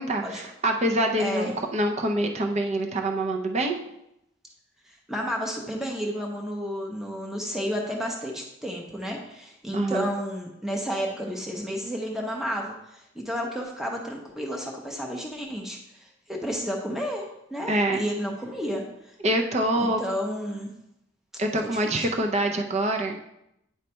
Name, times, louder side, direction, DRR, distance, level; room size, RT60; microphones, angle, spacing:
voice 1, 0.0-3.8 9.7-10.1 17.7-18.0 19.2-20.0 21.4-23.2, right 1 dB, 35° right, 3 dB, 0.6 m, -25 dB
voice 2, 1.2-1.5 4.9-17.2 17.5-19.1 19.8-20.7 21.6-22.1, equal, ahead, 0 dB, 0.8 m, -32 dB
9.5 x 3.2 x 4.3 m, 0.83 s
head